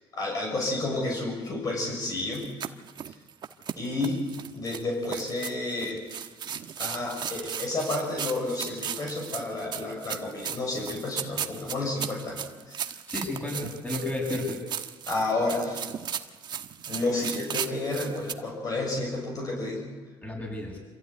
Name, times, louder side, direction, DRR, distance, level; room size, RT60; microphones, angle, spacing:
voice 1, 0.1-2.5 3.8-4.2 4.5-6.0 6.8-12.9 15.1-15.8 16.9-19.8, left 2 dB, 40° left, -1 dB, 6.6 m, -31 dB
sound 1, 2.3-18.3, right 8 dB, 50° right, 1.3 m, -36 dB
voice 2, 13.1-14.6 20.2-20.8, left 2 dB, 15° left, 0 dB, 7.8 m, -32 dB
26.5 x 15.0 x 9.7 m, 1.4 s
cardioid pair, 115°, 10 cm